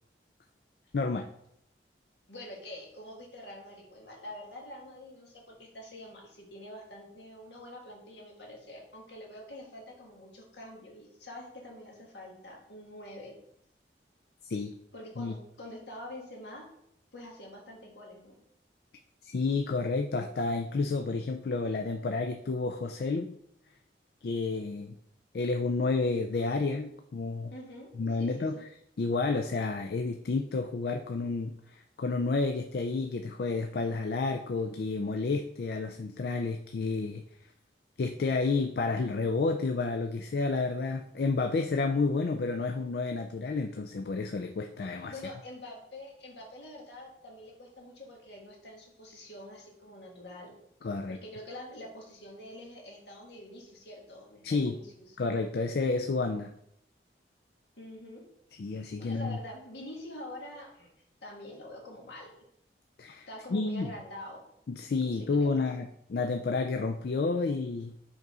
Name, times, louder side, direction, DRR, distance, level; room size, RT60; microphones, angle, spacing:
voice 1, 0.9-1.2 14.4-14.7 15.2-15.3 19.2-23.3 24.2-24.9 25.3-27.5 28.0-28.7 29.0-37.2 38.0-45.1 50.8-51.2 54.4-54.8 55.2-56.5 58.6-59.4 63.0-63.9 64.7-67.9, left 3 dB, 65° left, 5 dB, 0.4 m, -30 dB
voice 2, 2.3-13.4 14.9-16.7 17.1-18.4 27.5-27.9 28.2-28.6 45.1-50.6 51.1-55.2 57.8-58.2 59.0-60.9 61.2-62.4 63.3-64.4 65.1-65.6, left 1 dB, 80° left, -1 dB, 1.7 m, -46 dB
5.1 x 3.9 x 4.8 m, 0.74 s
head